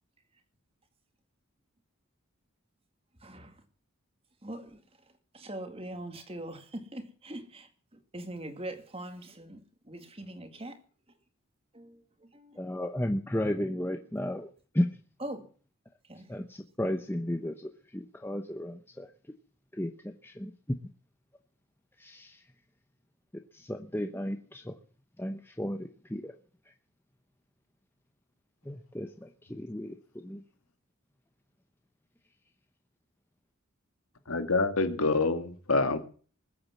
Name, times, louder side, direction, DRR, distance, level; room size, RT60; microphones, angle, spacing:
voice 1, 3.2-3.6 4.4-4.8 5.3-10.8 11.7-12.7 15.2-15.5 16.0-16.3, right 1 dB, 25° right, 2.1 m, -42 dB
voice 2, 12.5-14.9 16.3-19.1 19.7-20.8 22.0-22.4 23.5-24.8 25.2-26.3 26.7-26.8 28.6-30.4, left 1 dB, 10° left, 0.8 m, -34 dB
voice 3, 34.3-36.0, left 3 dB, 80° left, 2.1 m, -26 dB
20.5 x 8.7 x 7.5 m
head